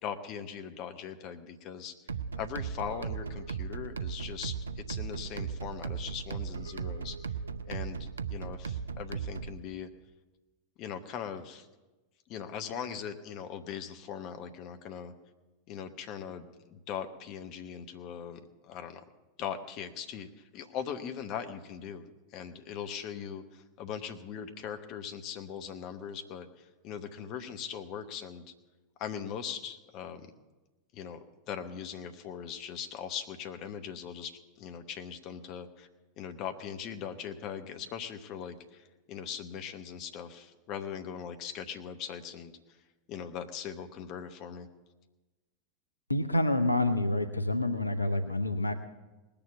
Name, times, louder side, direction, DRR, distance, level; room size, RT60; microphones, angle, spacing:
voice 1, 0.0-1.9 2.4-7.2 7.7-9.9 10.8-11.7 12.3-15.1 15.7-19.0 19.4-22.1 22.3-28.5 29.0-30.3 30.9-35.9 36.2-42.5 43.1-44.7, left 8 dB, 40° left, 8 dB, 1.0 m, -40 dB
sound 1, 2.1-9.6, right 6 dB, 70° right, 0.5 m, -37 dB
voice 2, 46.1-48.7, left 1 dB, 85° left, 9 dB, 0.6 m, -28 dB
19.0 x 7.0 x 8.3 m, 1.1 s
figure-of-eight pair, 90°, 0 cm